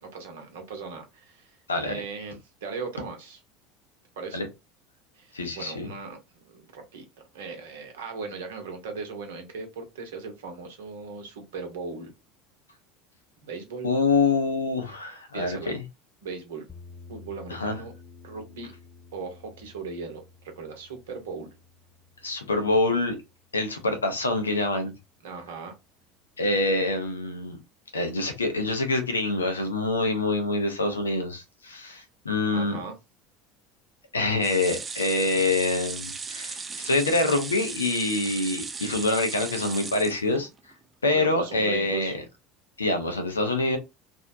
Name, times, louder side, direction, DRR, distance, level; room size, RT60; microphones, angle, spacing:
voice 1, 0.0-3.4 4.2-4.4 5.1-12.1 13.4-13.9 15.3-15.7 16.2-16.7 17.1-17.9 18.2-18.7 19.1-21.5 25.2-25.7 32.5-33.0 41.1-42.1, right 4 dB, 75° right, 0.8 m, -38 dB
voice 2, 1.7-2.0 4.3-4.5 5.3-5.9 13.8-15.8 17.5-17.8 22.2-23.2 23.5-24.9 26.4-27.6 27.9-32.8 34.1-40.5 41.0-42.2 42.8-43.8, left 2 dB, 85° left, 0.7 m, -26 dB
sound 1, 16.7-24.8, left 4 dB, 20° left, 0.6 m, -52 dB
sound 2, 34.4-40.7 41.1-41.2 41.5-41.6, right 4 dB, 25° right, 0.4 m, -37 dB
2.6 x 2.1 x 2.5 m
hypercardioid pair, 75°, 0 cm